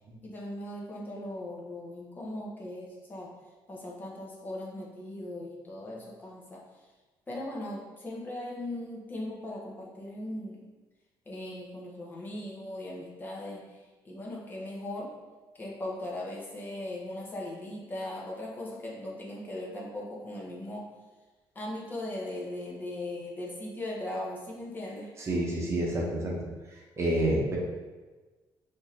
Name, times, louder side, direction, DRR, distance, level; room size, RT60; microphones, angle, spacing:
voice 1, 0.2-3.4 3.7-6.6 7.3-10.6 11.3-13.8 14.0-15.2 15.5-20.9 21.5-25.1, left 1 dB, 20° left, -3 dB, 0.9 m, -38 dB
voice 2, 25.2-26.4 27.0-27.6, right 1 dB, 35° right, -3 dB, 0.9 m, -28 dB
6.1 x 2.8 x 3.1 m, 1.3 s
cardioid pair, 140°, 9 cm